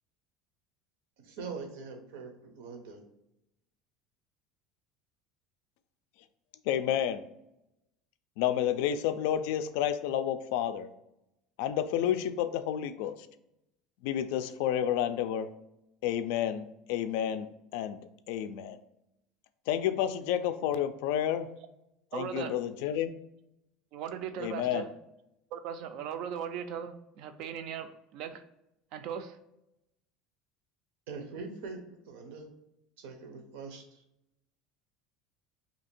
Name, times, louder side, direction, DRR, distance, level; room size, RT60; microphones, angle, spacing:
voice 1, 1.2-3.0 31.1-32.5 33.0-34.0, right 4 dB, 85° right, 4 dB, 0.8 m, -43 dB
voice 2, 6.7-7.2 8.4-10.9 11.6-13.3 14.0-15.5 16.0-18.0 18.3-18.8 19.7-21.5 22.1-23.1 24.4-24.8, left 10 dB, 75° left, 11 dB, 0.3 m, -30 dB
voice 3, 22.1-22.6 23.9-24.9 25.5-28.4 28.9-29.4, right 8 dB, 55° right, 9 dB, 0.3 m, -38 dB
2.8 x 2.5 x 4.3 m, 0.85 s
cardioid pair, 160°, 0 cm